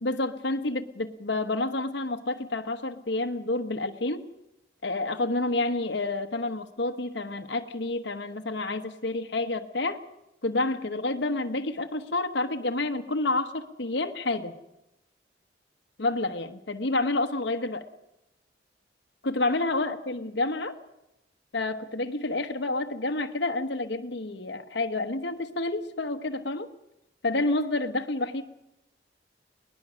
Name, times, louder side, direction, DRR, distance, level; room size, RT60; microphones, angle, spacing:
voice 1, 0.0-4.3 4.8-10.0 10.4-14.5 16.0-17.9 19.2-20.8 21.5-26.7 27.2-28.4, left 2 dB, 75° left, 5 dB, 1.1 m, -29 dB
22.5 x 19.0 x 6.3 m, 0.89 s
head